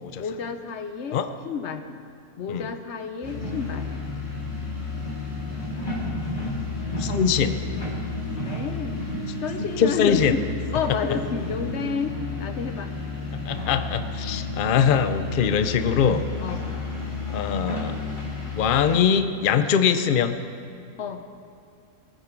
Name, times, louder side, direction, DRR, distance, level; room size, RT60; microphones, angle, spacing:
voice 1, 0.2-1.2 1.4-1.9 2.4-3.9 8.4-9.1 9.4-10.4 10.7-12.9 16.4-16.6 21.0-21.2, left 6 dB, 55° left, 8 dB, 1.0 m, -30 dB
sound 1, 3.2-19.0, left 3 dB, 30° left, 2.1 m, -31 dB
voice 2, 7.0-7.6 9.8-10.3 13.4-16.3 17.3-18.0 18.5-20.4, left 7 dB, 70° left, 10 dB, 0.5 m, -22 dB
21.0 x 9.8 x 4.5 m, 2.4 s
omnidirectional pair, 1.6 m